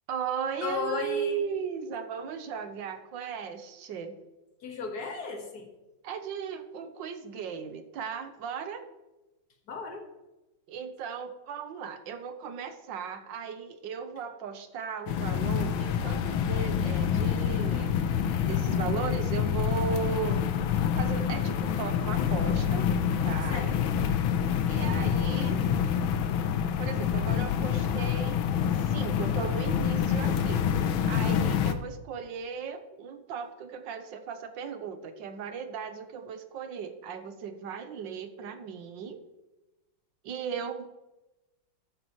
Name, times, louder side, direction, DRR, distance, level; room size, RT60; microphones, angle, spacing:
voice 1, 0.1-4.2 6.0-8.9 10.7-18.0 18.5-20.4 21.0-22.9 23.2-23.6 24.7-25.6 26.8-28.4 28.8-30.7 31.0-39.2 40.2-40.9, right 7 dB, 70° right, 9 dB, 1.6 m, -36 dB
voice 2, 0.6-1.4 4.6-5.7 9.7-10.0 23.5-23.7, left 5 dB, 50° left, 4 dB, 2.0 m, -35 dB
sound 1, 15.1-31.7, left 8 dB, 85° left, 1.6 m, -27 dB
13.0 x 9.8 x 3.1 m, 1.0 s
omnidirectional pair, 2.2 m